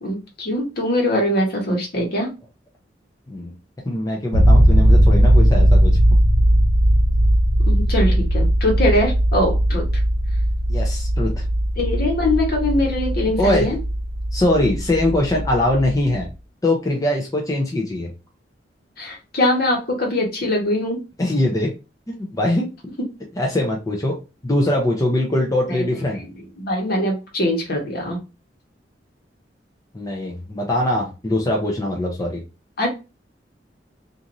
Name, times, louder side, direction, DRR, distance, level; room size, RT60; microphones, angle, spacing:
voice 1, 0.0-2.3 7.7-9.8 11.8-13.8 19.0-21.0 25.7-25.9 26.6-28.2 32.8-32.9, left 1 dB, 60° left, 1 dB, 1.1 m, -22 dB
voice 2, 3.8-6.0 10.7-11.4 13.4-13.7 14.3-16.3 16.6-18.1 21.2-21.7 22.1-22.7 23.4-24.2 24.4-26.2 29.9-32.4, left 1 dB, 20° left, 0 dB, 0.5 m, -22 dB
sound 1, 4.3-16.2, equal, 85° left, 0.9 m, -18 dB
3.0 x 2.5 x 2.5 m, 0.29 s
head